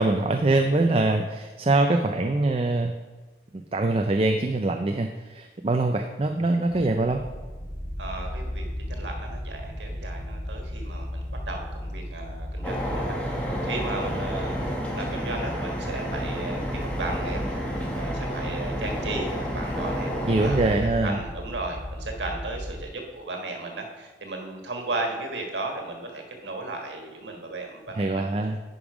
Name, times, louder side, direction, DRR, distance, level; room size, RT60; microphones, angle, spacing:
voice 1, 0.0-2.9 3.5-7.2 20.3-21.2 28.0-28.6, right 2 dB, 35° right, 5 dB, 0.4 m, -23 dB
sound 1, 7.0-22.8, left 1 dB, 45° left, 1.4 m, -36 dB
voice 2, 8.0-20.1 20.4-20.7 21.0-28.3, right 2 dB, 90° right, 2 dB, 1.5 m, -35 dB
sound 2, 12.6-20.8, equal, 10° left, 1.3 m, -31 dB
10.0 x 5.4 x 4.9 m, 1.3 s
head